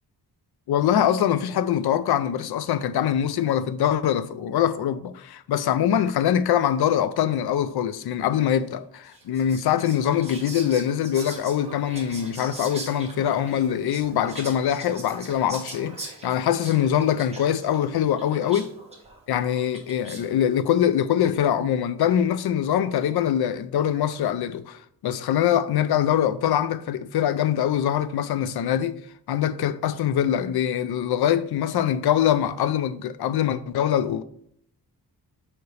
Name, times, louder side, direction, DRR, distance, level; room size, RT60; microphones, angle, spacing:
voice 1, 0.7-16.0 16.2-18.6 19.3-29.0 29.3-34.2, left 10 dB, 75° left, 0.5 m, -23 dB
Whispering, 9.0-20.4, right 2 dB, 15° right, 1.2 m, -41 dB
7.0 x 5.2 x 3.3 m
wide cardioid pair, 175°, 38 cm